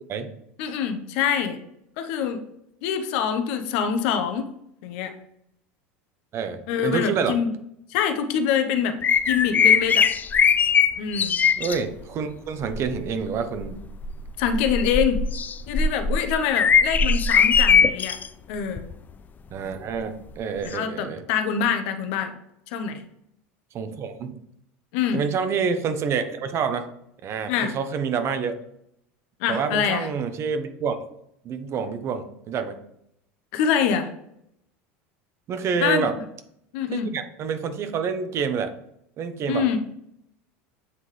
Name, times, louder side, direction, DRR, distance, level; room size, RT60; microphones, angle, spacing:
voice 1, 0.6-1.6 2.0-2.4 2.8-4.5 4.8-5.1 6.7-7.5 7.9-9.0 9.3-10.1 11.0-11.4 14.4-15.2 15.7-18.2 18.5-18.9 20.6-22.3 22.7-23.0 24.9-25.2 27.5-27.7 29.4-30.1 33.5-34.1 35.8-36.1 36.7-37.1 39.5-39.8, left 7 dB, 70° left, 7 dB, 0.8 m, -25 dB
voice 2, 6.3-7.4 11.6-13.8 19.5-21.2 23.7-24.4 25.1-26.9 27.2-28.6 29.5-31.0 31.4-32.8 35.5-36.2 36.9-38.7 39.2-39.6, right 6 dB, 45° right, 9 dB, 0.8 m, -27 dB
sound 1, 9.0-11.8 12.6-13.0 13.6-18.3 18.8-18.9 20.7-20.8, left 6 dB, 25° left, 0.4 m, -20 dB
8.1 x 3.7 x 3.2 m, 0.76 s
supercardioid pair, 105°, 7 cm